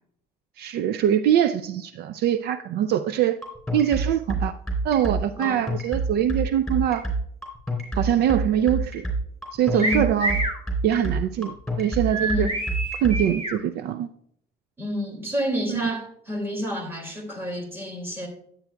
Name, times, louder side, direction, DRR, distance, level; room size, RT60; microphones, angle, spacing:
voice 1, 0.6-3.4 3.7-4.5 4.8-7.0 7.9-9.1 9.5-10.4 10.8-12.5 13.0-14.1 15.7-15.8, right 10 dB, 70° right, 11 dB, 0.4 m, -23 dB
sound 1, 3.4-13.2, right 2 dB, ahead, 3.2 m, -27 dB
sound 2, 9.8-10.6 12.1-13.6, right 2 dB, 35° right, 2.0 m, -27 dB
voice 2, 12.2-12.6 14.8-18.3, equal, 15° right, 2 dB, 2.3 m, -29 dB
10.0 x 8.2 x 2.2 m, 0.67 s
cardioid pair, 110°, 17 cm